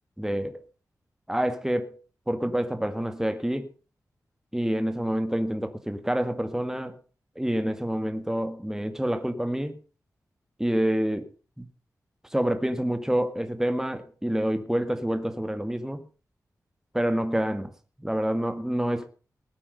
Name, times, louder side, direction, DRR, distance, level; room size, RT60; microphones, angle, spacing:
voice 1, 0.2-0.6 1.3-2.0 2.3-3.7 4.5-7.0 7.4-9.7 10.6-11.3 11.6-11.7 12.3-16.0 16.9-17.7 18.0-19.1, right 1 dB, 5° right, 1.8 m, -27 dB
19.5 x 8.7 x 5.3 m
cardioid pair, 50°, 7 cm